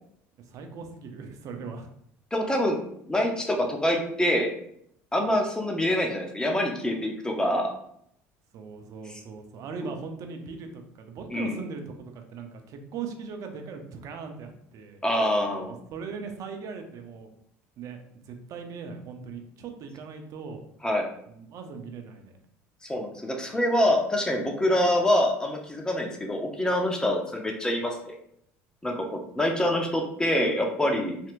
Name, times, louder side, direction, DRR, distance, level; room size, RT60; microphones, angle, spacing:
voice 1, 0.4-1.9 8.5-15.0 15.9-17.3 17.8-20.6 21.3-22.4, right 5 dB, 55° right, 5 dB, 0.6 m, -39 dB
voice 2, 2.3-2.8 3.1-4.5 5.1-7.7 11.3-11.6 15.0-15.7 20.8-21.1 22.9-28.1 28.8-29.0 29.4-31.2, left 1 dB, 10° left, 2 dB, 0.7 m, -25 dB
3.3 x 2.8 x 2.5 m, 0.70 s
supercardioid pair, 85°, 7 cm